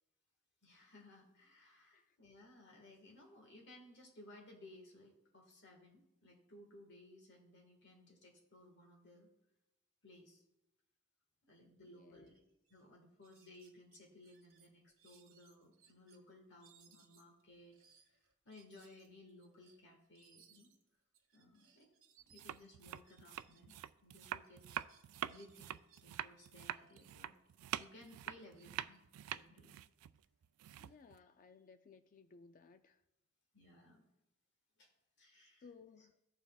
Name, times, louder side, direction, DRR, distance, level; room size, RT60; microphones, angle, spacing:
voice 1, 0.6-9.3 10.0-10.4 11.4-12.4 12.7-17.8 18.1-18.2 18.4-20.7 21.3-21.9 22.3-23.8 24.0-24.6 25.2-27.3 27.7-29.0 29.3-29.7 33.5-34.0 34.8-34.9 35.2-35.6, left 1 dB, 55° left, 1 dB, 1.5 m, -60 dB
voice 2, 1.9-2.2 11.8-12.4 30.8-33.0 35.6-36.2, left 4 dB, 40° left, 10 dB, 0.3 m, -60 dB
sound 1, 12.3-12.4 12.6-12.8 13.2-16.2 16.6-23.9 24.2-26.5 26.9-29.7, right 8 dB, 65° right, 1.4 m, -69 dB
sound 2, 22.3-31.2, right 11 dB, 85° right, 0.3 m, -45 dB
15.5 x 5.6 x 2.3 m, 0.91 s
head